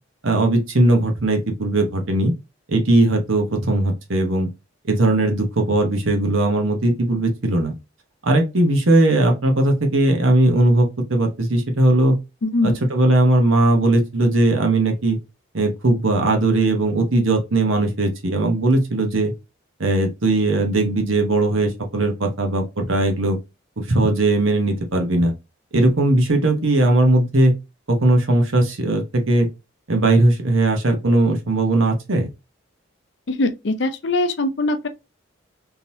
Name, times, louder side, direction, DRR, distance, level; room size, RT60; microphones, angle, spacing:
voice 1, 0.2-2.3 2.7-4.5 4.9-7.7 8.2-12.2 12.6-15.2 15.5-19.3 19.8-23.4 23.8-25.3 25.7-27.5 27.9-29.5 29.9-32.3, right 2 dB, 80° right, 1.1 m, -18 dB
voice 2, 12.4-12.7 33.3-34.9, left 2 dB, 60° left, 0.6 m, -21 dB
3.7 x 2.9 x 2.7 m
head